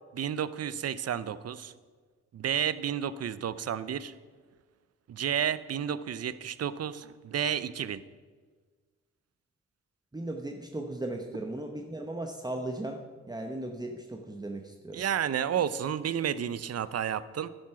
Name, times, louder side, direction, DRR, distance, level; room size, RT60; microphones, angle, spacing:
voice 1, 0.1-1.7 2.3-4.1 5.1-8.0 14.9-17.5, right 9 dB, 55° right, 16 dB, 0.6 m, -31 dB
voice 2, 10.1-15.0, right 1 dB, 15° right, 2 dB, 0.9 m, -37 dB
11.0 x 7.7 x 5.8 m, 1.5 s
cardioid pair, 70°, 29 cm